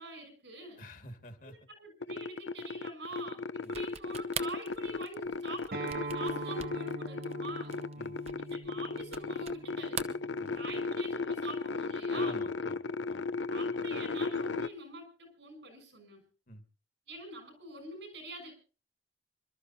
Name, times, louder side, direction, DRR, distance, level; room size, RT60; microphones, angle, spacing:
voice 1, 0.0-0.8 1.4-7.8 8.5-10.2 10.5-12.5 13.5-16.3 17.1-18.5, right 2 dB, 75° right, 6 dB, 6.5 m, -45 dB
voice 2, 0.8-1.6 3.6-3.8 8.0-8.2 10.4-10.5 12.1-12.8 13.1-13.2 16.5-16.6, left 1 dB, 50° left, 8 dB, 2.0 m, -48 dB
sound 1, 2.0-14.7, left 4 dB, 80° left, 0.6 m, -35 dB
sound 2, 3.6-9.6 9.9-10.9, right 7 dB, 35° right, 0.9 m, -43 dB
Acoustic guitar, 5.7-10.9, right 3 dB, 55° right, 1.2 m, -43 dB
27.0 x 13.0 x 2.8 m, 0.37 s
head